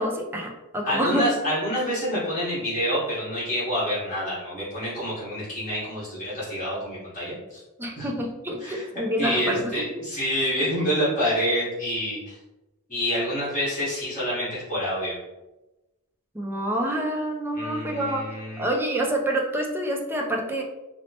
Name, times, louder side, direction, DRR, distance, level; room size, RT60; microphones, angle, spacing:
voice 1, 0.0-1.2 7.8-9.8 16.3-18.2 18.6-20.6, right 1 dB, 10° right, 0 dB, 0.4 m, -27 dB
voice 2, 0.8-7.6 8.0-8.1 8.6-8.8 9.2-12.4 12.9-15.1 17.5-18.7, equal, 35° left, -10 dB, 1.4 m, -27 dB
4.2 x 2.1 x 2.8 m, 1.0 s
head